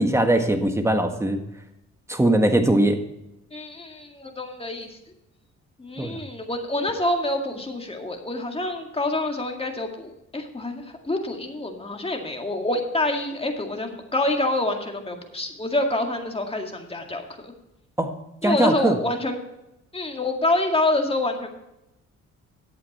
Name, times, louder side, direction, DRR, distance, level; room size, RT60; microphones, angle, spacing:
voice 1, 0.0-1.4 2.1-3.0 6.0-6.2 18.0-18.1 18.4-19.0, right 1 dB, 10° right, 6 dB, 1.5 m, -20 dB
voice 2, 3.5-5.0 5.8-17.5 18.4-19.4 19.9-21.5, left 2 dB, 20° left, 3 dB, 2.0 m, -27 dB
11.5 x 8.3 x 4.3 m, 0.89 s
cardioid pair, 90°, 30 cm